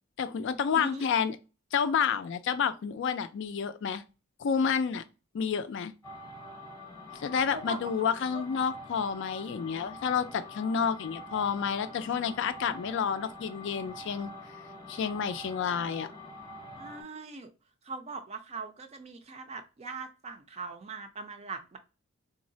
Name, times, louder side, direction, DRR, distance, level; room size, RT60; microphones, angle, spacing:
voice 1, 0.2-1.4 1.7-4.0 4.4-5.0 5.3-5.9 7.2-14.3 14.9-16.1, left 7 dB, 55° left, 0.3 m, -29 dB
voice 2, 0.7-1.1 7.5-7.9 8.3-8.4 15.7-16.0 16.8-17.5 17.8-21.8, right 3 dB, 30° right, 0.4 m, -41 dB
sound 1, 6.0-17.0, left 1 dB, 15° left, 0.7 m, -45 dB
3.7 x 2.0 x 2.6 m
head